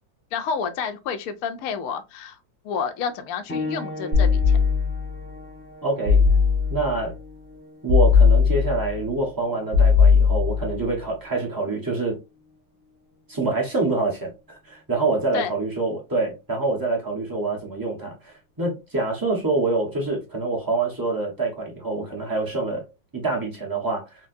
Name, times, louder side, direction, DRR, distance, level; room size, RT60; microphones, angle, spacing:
voice 1, 0.3-2.4 2.6-4.6 15.3-15.5, left 6 dB, 75° left, 0.8 m, -29 dB
sound 1, 3.5-13.7 14.7-14.8 15.5-15.6, left 3 dB, 10° left, 0.7 m, -40 dB
sound 2, 4.1-5.1 6.1-7.0 7.9-9.0 9.7-10.8, left 5 dB, 50° right, 1.1 m, -18 dB
voice 2, 5.8-6.2 6.7-7.1 7.8-12.2 13.3-22.8 23.1-24.1, right 3 dB, 30° right, 0.3 m, -26 dB
4.2 x 2.1 x 2.6 m
omnidirectional pair, 2.1 m